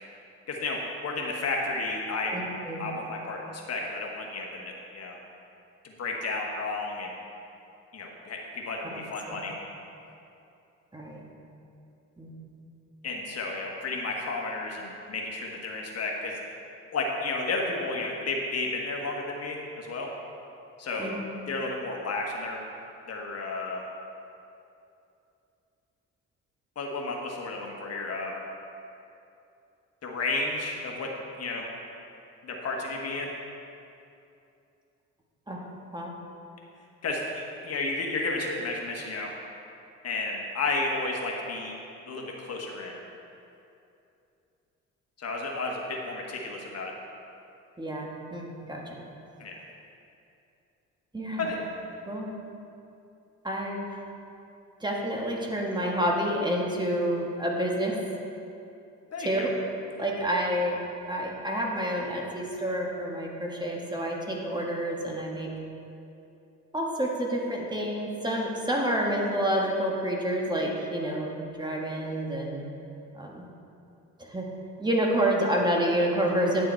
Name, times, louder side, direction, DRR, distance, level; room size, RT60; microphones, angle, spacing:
voice 1, 0.5-2.4 2.8-5.2 5.8-7.1 7.9-9.6 13.0-16.4 16.9-20.1 20.8-21.2 21.5-22.6 23.1-23.8 26.7-28.3 30.0-31.1 31.4-31.6 32.4-33.3 37.0-39.3 40.0-41.7 42.1-43.0 45.2-46.9 49.4-49.5 51.4-51.6 59.1-59.5, left 3 dB, 55° left, 0 dB, 1.4 m, -32 dB
voice 2, 2.3-2.8 9.3-9.4 10.9-11.2 12.2-12.3 21.0-21.2 35.5-35.6 35.9-36.1 47.8-48.8 51.1-51.5 52.1-52.4 53.4-53.8 54.8-58.0 59.2-59.5 60.0-60.8 61.1-65.5 66.7-71.3 71.6-72.7 73.1-73.4 74.2-74.5 74.8-76.7, right 1 dB, 15° right, -2 dB, 1.5 m, -28 dB
10.0 x 6.8 x 4.5 m, 2.7 s
cardioid pair, 90°, 30 cm